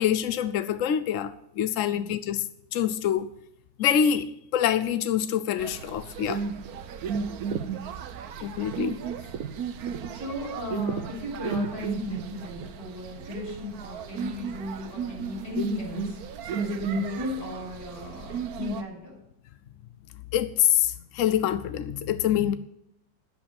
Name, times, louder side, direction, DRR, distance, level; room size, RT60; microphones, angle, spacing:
voice 1, 0.0-3.3 3.8-6.5 8.4-9.1 20.3-22.6, left 10 dB, 70° left, 0.7 m, -26 dB
sound 1, 5.6-18.8, right 6 dB, 65° right, 1.2 m, -34 dB
voice 2, 10.1-19.2, left 2 dB, 35° left, 5.8 m, -35 dB
10.0 x 8.0 x 8.4 m
omnidirectional pair, 2.0 m